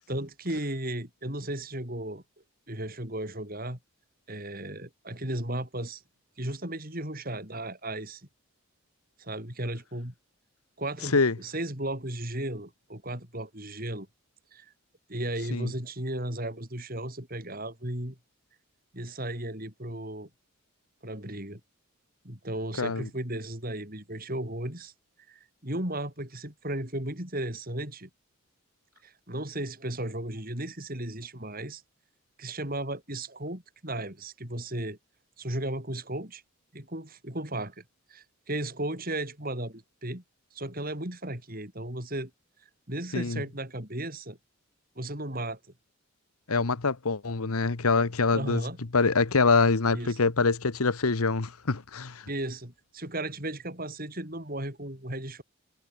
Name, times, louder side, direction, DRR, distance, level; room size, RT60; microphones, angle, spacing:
voice 1, 0.1-2.2 2.7-3.8 4.3-6.0 6.4-8.2 9.2-10.1 10.8-14.1 14.5-14.7 15.1-18.2 18.9-20.3 21.0-21.6 22.2-24.9 25.3-28.1 29.0-31.8 32.4-35.0 35.4-36.4 36.7-37.8 38.1-40.2 40.5-42.3 42.9-44.4 45.0-45.6 48.3-48.8 49.9-50.2 52.3-55.4, right 1 dB, 40° right, 5.8 m, -35 dB
voice 2, 22.8-23.1 43.1-43.4 46.5-48.6 48.9-52.2, left 4 dB, 85° left, 1.2 m, -25 dB
head